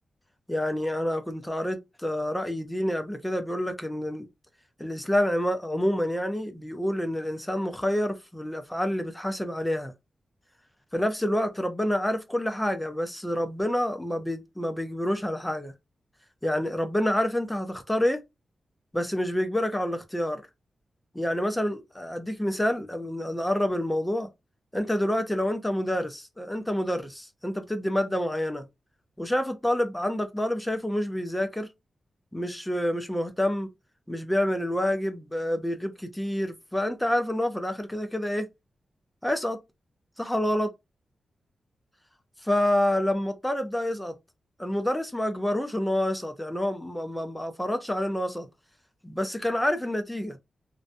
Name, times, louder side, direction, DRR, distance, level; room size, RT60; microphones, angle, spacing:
voice 1, 0.5-4.3 4.8-9.9 10.9-15.7 16.4-18.2 18.9-20.4 21.1-24.3 24.7-28.6 29.2-31.7 32.3-33.7 34.1-38.5 39.2-39.6 40.2-40.7 42.4-44.1 44.6-48.5 49.0-50.4, left 1 dB, 5° left, 0.4 m, -28 dB
2.5 x 2.1 x 2.5 m
wide cardioid pair, 130°, 0 cm